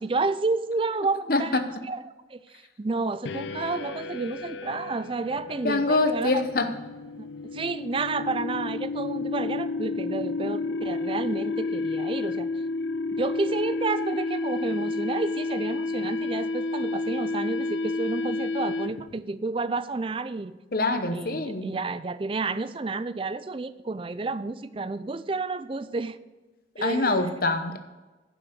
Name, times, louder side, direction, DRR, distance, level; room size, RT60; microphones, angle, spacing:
voice 1, 0.0-2.0 2.3-6.5 7.2-7.3 7.5-12.5 13.2-20.5 21.1-26.2 26.8-27.2, right 3 dB, 30° right, 14 dB, 0.4 m, -30 dB
voice 2, 1.3-1.7 5.6-6.7 20.7-21.8 26.8-27.8, left 2 dB, 50° left, 8 dB, 0.9 m, -25 dB
sound 1, 3.2-19.2, left 3 dB, 75° left, 0.5 m, -31 dB
11.5 x 6.1 x 6.4 m, 1.2 s
head